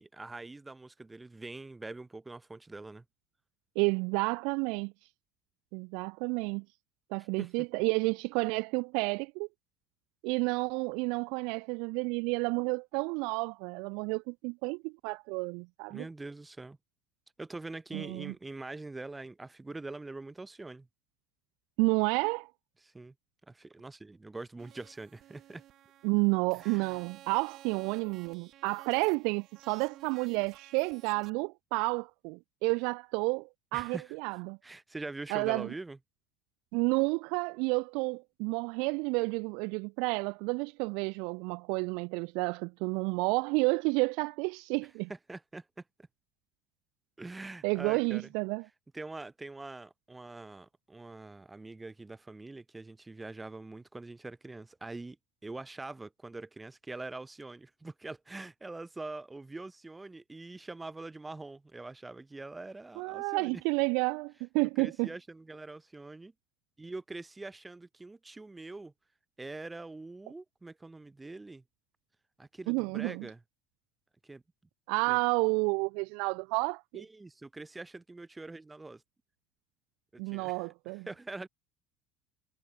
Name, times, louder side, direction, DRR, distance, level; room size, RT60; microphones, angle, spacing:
voice 1, 0.0-3.0 7.4-7.5 15.9-16.8 17.4-20.9 22.8-23.1 23.5-25.6 26.5-27.0 33.7-34.1 34.6-36.0 45.1-45.7 47.2-48.3 48.9-55.2 55.4-63.6 64.6-66.3 66.8-68.9 69.4-71.6 72.4-73.4 74.2-74.4 75.1-75.2 76.9-79.0 80.1-80.7 81.1-81.5, right 2 dB, 10° right, 2.2 m, -44 dB
voice 2, 3.8-4.9 5.7-6.6 7.1-9.5 10.2-16.0 17.9-18.3 21.8-22.5 26.0-34.6 35.3-35.7 36.7-45.1 47.6-48.6 63.0-65.1 72.7-73.3 74.9-77.0 80.2-81.1, right 32 dB, 75° right, 0.3 m, -30 dB
sound 1, 24.6-31.3, right 13 dB, 45° right, 3.8 m, -55 dB
cardioid pair, 140°, 0 cm